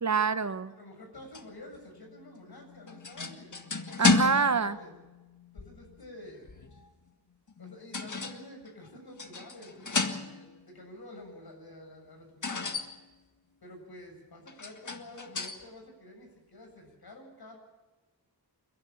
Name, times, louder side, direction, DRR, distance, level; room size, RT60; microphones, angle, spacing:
voice 1, 0.0-0.7 4.0-4.8, right 5 dB, 45° right, 12 dB, 0.9 m, -26 dB
voice 2, 0.8-3.5 4.6-4.9 5.5-6.5 7.6-12.7 13.6-17.6, left 1 dB, 70° left, 2 dB, 7.7 m, -49 dB
sound 1, 1.1-6.9 7.5-8.9 9.2-10.6 12.4-13.0 14.5-15.6, left 4 dB, 50° left, 1.9 m, -33 dB
29.0 x 11.0 x 8.8 m, 1.2 s
wide cardioid pair, 90°, 39 cm